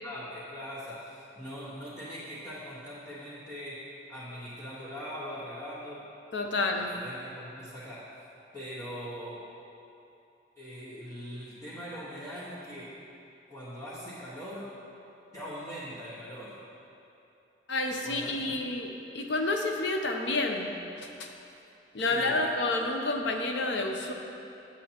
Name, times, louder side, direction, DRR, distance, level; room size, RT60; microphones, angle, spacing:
voice 1, 0.0-6.1 6.7-8.1 8.5-9.5 10.5-13.0 13.5-14.7 15.3-16.6 17.9-18.6 22.1-22.4, equal, 20° left, -14 dB, 1.4 m, -41 dB
voice 2, 6.3-7.0 17.7-21.3 21.9-24.1, left 2 dB, 75° left, 3 dB, 0.7 m, -30 dB
8.3 x 7.5 x 2.9 m, 2.8 s
head